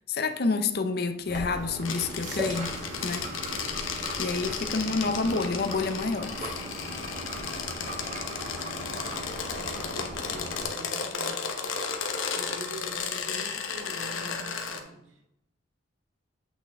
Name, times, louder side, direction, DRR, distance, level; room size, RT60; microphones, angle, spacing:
voice 1, 0.1-2.7 3.0-3.3 4.2-6.6, left 4 dB, 55° left, 0.6 m, -28 dB
sound 1, 1.3-10.7, equal, 40° right, 1.7 m, -37 dB
sound 2, 1.8-14.8, left 6 dB, 90° left, 1.0 m, -34 dB
voice 2, 9.8-11.5 12.3-15.1, equal, 75° right, 1.9 m, -44 dB
8.3 x 5.6 x 3.5 m
head